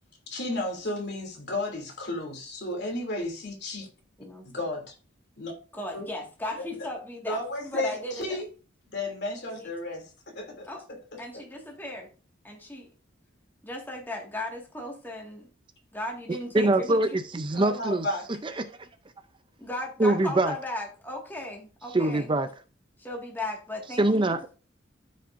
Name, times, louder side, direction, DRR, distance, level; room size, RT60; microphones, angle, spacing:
voice 1, 0.3-3.9 4.4-4.9 5.4-5.5 5.9-6.1 7.3-8.4 8.9-10.7 11.1-11.2 17.5-18.2, left 1 dB, 55° left, 2.8 m, -33 dB
voice 2, 4.2-4.7 5.7-8.4 9.6-9.7 10.6-10.8 11.2-12.1 12.4-12.9 13.6-15.5 15.9-17.2 19.6-22.3 23.0-24.3, left 1 dB, 10° left, 1.8 m, -36 dB
voice 3, 16.5-18.1 18.4-18.9 20.0-20.5 21.9-22.5 24.0-24.6, right 2 dB, 25° right, 0.5 m, -24 dB
13.5 x 5.4 x 2.6 m
head